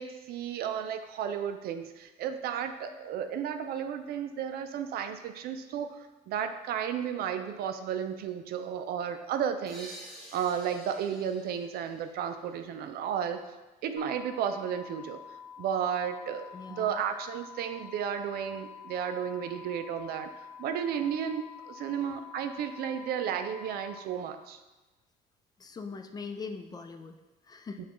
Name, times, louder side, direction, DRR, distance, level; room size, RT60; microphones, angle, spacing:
voice 1, 0.0-9.9 10.3-13.4 13.8-15.2 15.6-20.3 20.6-24.6, right 8 dB, 65° right, 8 dB, 0.4 m, -33 dB
sound 1, 9.7-13.2, right 1 dB, ahead, 1.1 m, -50 dB
sound 2, 14.0-24.0, left 7 dB, 55° left, 1.0 m, -47 dB
voice 2, 16.5-17.1 22.0-22.2 25.6-27.9, left 4 dB, 25° left, 6 dB, 0.3 m, -42 dB
7.0 x 2.4 x 3.0 m, 1.1 s
cardioid pair, 110°, 17 cm